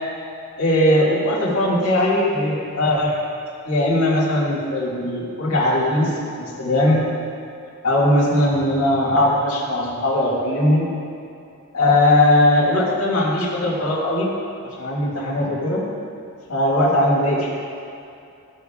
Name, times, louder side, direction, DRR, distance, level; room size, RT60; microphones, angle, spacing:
voice 1, 0.6-3.2 3.6-7.1 7.8-10.9 11.7-14.3 14.8-15.8 16.5-17.5, left 1 dB, 75° left, -7 dB, 1.8 m, -19 dB
13.5 x 6.5 x 2.3 m, 2.6 s
head